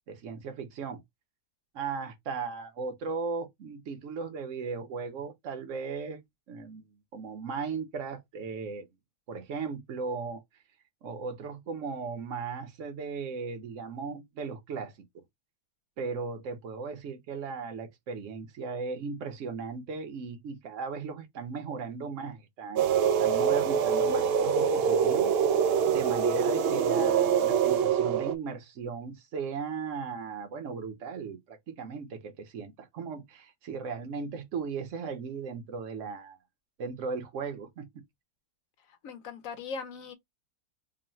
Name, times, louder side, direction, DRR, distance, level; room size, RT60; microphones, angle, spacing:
voice 1, 0.1-1.0 1.7-6.2 6.5-6.9 7.1-8.9 9.3-10.4 11.0-14.9 16.0-25.4 25.7-36.4 36.8-37.9, right 5 dB, 55° right, 1.2 m, -37 dB
sound 1, 22.8-28.3, right 7 dB, 85° right, 0.5 m, -25 dB
voice 2, 38.8-40.1, left 5 dB, 65° left, 1.1 m, -40 dB
3.9 x 2.1 x 4.2 m
omnidirectional pair, 1.6 m